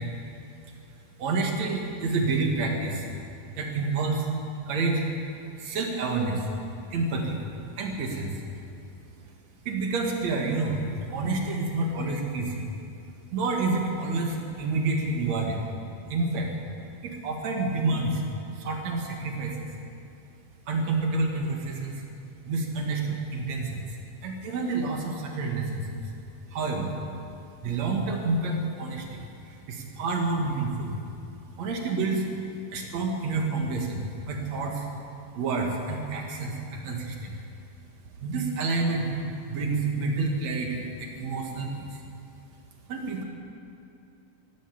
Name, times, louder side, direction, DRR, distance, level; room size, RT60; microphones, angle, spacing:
voice 1, 1.2-3.1 3.6-4.3 4.7-5.0 5.6-6.5 6.9-7.4 7.8-8.4 9.6-12.7 13.3-15.6 16.1-16.5 17.0-18.2 18.5-19.7 20.7-22.0 22.5-23.9 24.2-25.9 26.5-26.9 27.6-30.9 31.6-32.3 32.7-34.9 35.3-37.3 38.2-39.1 39.5-42.0 42.9-43.2, right 3 dB, 60° right, 1 dB, 2.7 m, -28 dB
15.5 x 11.5 x 7.2 m, 2.7 s
omnidirectional pair, 3.8 m